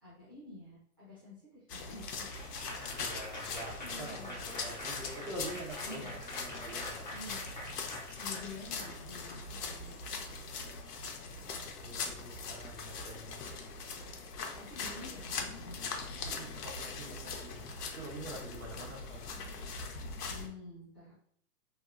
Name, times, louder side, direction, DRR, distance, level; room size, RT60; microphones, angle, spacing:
voice 1, 0.0-2.5 3.4-4.8 5.8-6.2 7.1-7.5 8.2-10.0 14.6-15.8 20.3-21.1, left 2 dB, 15° right, -12 dB, 0.5 m, -49 dB
sound 1, 1.7-20.5, left 4 dB, 80° left, 0.7 m, -41 dB
Applause / Crowd, 2.2-9.4, left 1 dB, 30° left, 0.4 m, -45 dB
voice 2, 2.6-7.1 11.8-13.4 16.2-19.4, right 1 dB, 55° right, -3 dB, 1.0 m, -46 dB
2.8 x 2.2 x 2.3 m, 0.62 s
hypercardioid pair, 170°, 46 cm